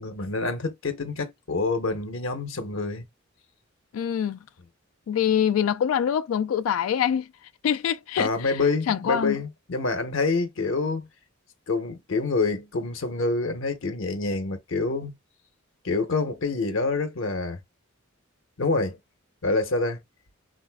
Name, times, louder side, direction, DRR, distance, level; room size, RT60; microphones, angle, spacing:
voice 1, 0.0-3.0 8.2-11.1 11.7-15.1 15.8-17.6 18.6-19.0 19.4-20.0, left 3 dB, 70° left, 0.7 m, -27 dB
voice 2, 3.9-4.4 5.1-7.3 7.6-9.4, left 9 dB, 85° left, 0.3 m, -25 dB
3.9 x 2.5 x 2.2 m
head